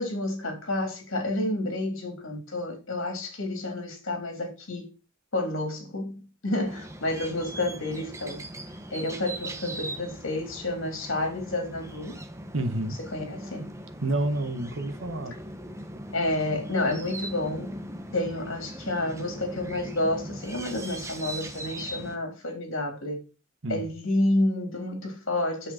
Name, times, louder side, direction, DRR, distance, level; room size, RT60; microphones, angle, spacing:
voice 1, 0.0-4.9 5.3-8.4 8.9-12.2 13.0-13.7 16.1-17.8 18.1-23.2 23.7-25.7, left 1 dB, 65° left, 3.5 m, -30 dB
sound 1, 6.6-22.2, right 1 dB, 15° right, 1.1 m, -40 dB
voice 2, 12.5-13.0 14.0-15.3 23.6-23.9, right 1 dB, 65° right, 1.5 m, -29 dB
8.9 x 7.3 x 4.4 m
head